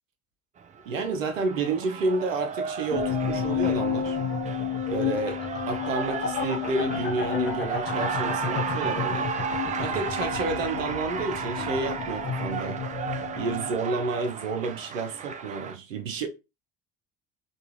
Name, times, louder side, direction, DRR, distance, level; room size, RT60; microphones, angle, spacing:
Cheering, 0.6-15.8, right 7 dB, 20° right, 0.3 m, -34 dB
voice 1, 0.9-4.2 4.9-5.4 5.7-9.3 9.8-12.8 13.4-16.3, right 3 dB, 90° right, 0.6 m, -30 dB
sound 1, 2.9-13.8, left 7 dB, 30° left, 0.7 m, -31 dB
3.5 x 2.3 x 2.9 m
figure-of-eight pair, 60°, 38 cm